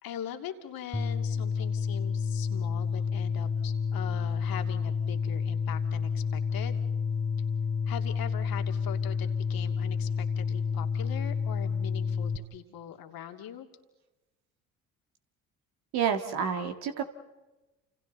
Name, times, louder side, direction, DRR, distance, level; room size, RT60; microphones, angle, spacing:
voice 1, 0.0-6.8 7.9-13.7, left 10 dB, 55° left, 5 dB, 2.8 m, -42 dB
sound 1, 0.9-12.4, left 6 dB, 10° left, 3.3 m, -30 dB
voice 2, 15.9-17.0, right 7 dB, 65° right, 5 dB, 2.1 m, -29 dB
29.5 x 28.5 x 4.1 m, 1.1 s
hypercardioid pair, 60°, 41 cm